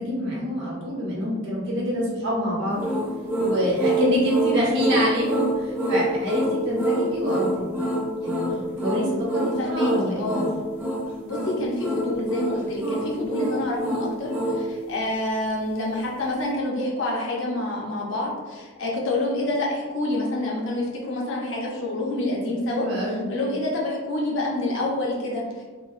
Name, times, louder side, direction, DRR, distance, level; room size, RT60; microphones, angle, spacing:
voice 1, 0.0-2.9 3.4-7.7 8.2-8.4 8.8-10.5 22.7-23.3, equal, 55° right, -6 dB, 1.2 m, -26 dB
sound 1, 2.8-14.6, right 1 dB, 10° right, 0.7 m, -26 dB
voice 2, 9.6-10.5 11.2-25.6, left 1 dB, 60° left, -3 dB, 0.8 m, -27 dB
3.8 x 2.3 x 2.5 m, 1.4 s
head